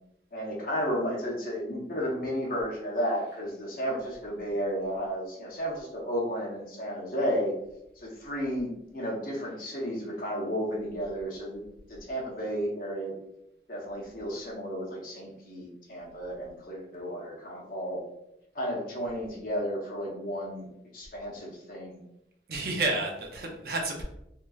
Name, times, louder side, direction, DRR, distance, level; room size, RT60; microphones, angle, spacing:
voice 1, 0.3-7.5 8.0-11.6 11.9-13.1 13.7-18.0 18.5-20.7 20.9-22.0, equal, 50° left, -3 dB, 0.8 m, -33 dB
voice 2, 22.5-24.0, right 2 dB, 55° right, 1 dB, 0.6 m, -30 dB
3.1 x 2.8 x 2.3 m, 0.82 s
head